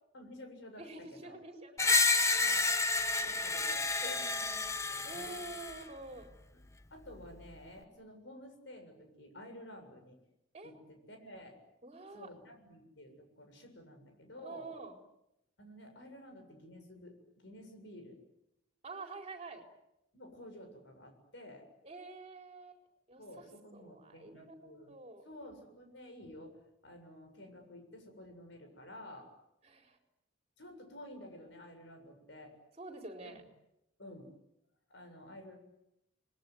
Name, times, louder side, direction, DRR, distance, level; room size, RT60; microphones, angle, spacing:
voice 1, 0.1-1.4 2.4-2.7 3.2-5.4 6.9-10.2 10.6-11.6 12.1-14.7 15.6-18.2 20.1-21.7 23.2-25.0 25.2-26.6 26.8-29.3 30.6-32.5 33.2-33.4 34.0-34.3 34.9-35.6, left 1 dB, 65° left, 5 dB, 7.4 m, -51 dB
voice 2, 0.8-2.0 3.9-4.1 5.0-6.4 10.5-10.7 11.8-12.3 14.4-14.9 18.8-19.6 21.8-22.8 23.1-23.4 23.7-25.2 29.7-30.0 32.8-33.4, right 3 dB, 30° right, 3 dB, 4.5 m, -47 dB
Screech, 1.8-5.8, left 3 dB, 15° left, 1.1 m, -30 dB
29.0 x 21.0 x 9.4 m, 0.85 s
head